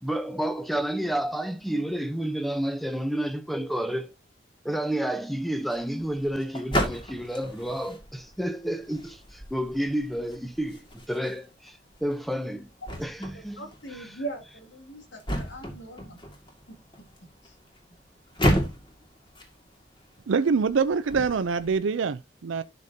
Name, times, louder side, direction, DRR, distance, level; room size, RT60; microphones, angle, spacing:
voice 1, 0.0-4.1 4.6-12.7 13.0-13.6 13.9-14.2, right 1 dB, ahead, 0.7 m, -30 dB
sound 1, 5.6-21.7, equal, 25° left, 2.1 m, -34 dB
voice 2, 13.6-16.2 16.7-16.8 17.4-17.5, right 2 dB, 75° left, 2.6 m, -40 dB
voice 3, 20.3-22.6, right 5 dB, 85° right, 0.5 m, -25 dB
11.5 x 5.3 x 2.7 m
head